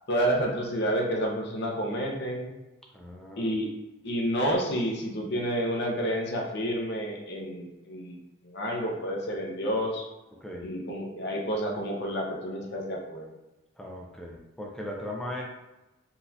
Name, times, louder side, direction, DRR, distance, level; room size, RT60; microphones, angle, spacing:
voice 1, 0.1-2.5 3.4-3.7 4.0-8.2 8.4-10.0 10.6-13.3, equal, 50° left, 0 dB, 0.6 m, -29 dB
voice 2, 2.9-3.5 10.4-10.7 13.8-15.4, left 1 dB, 5° left, -2 dB, 0.3 m, -38 dB
3.8 x 2.4 x 2.7 m, 1.0 s
head